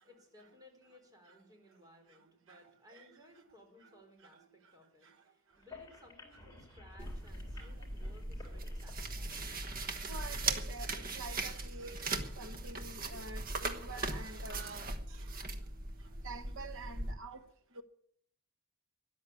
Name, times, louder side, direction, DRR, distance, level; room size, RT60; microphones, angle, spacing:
voice 1, 0.0-9.5, left 1 dB, 15° right, 3.8 m, -61 dB
sound 1, 5.5-11.0, left 3 dB, 15° left, 3.2 m, -55 dB
sound 2, 7.0-17.1, right 3 dB, 40° right, 1.3 m, -39 dB
voice 2, 10.1-14.9 16.2-17.4 17.8-17.9, right 3 dB, 60° right, 1.2 m, -47 dB
13.0 x 11.5 x 8.3 m
head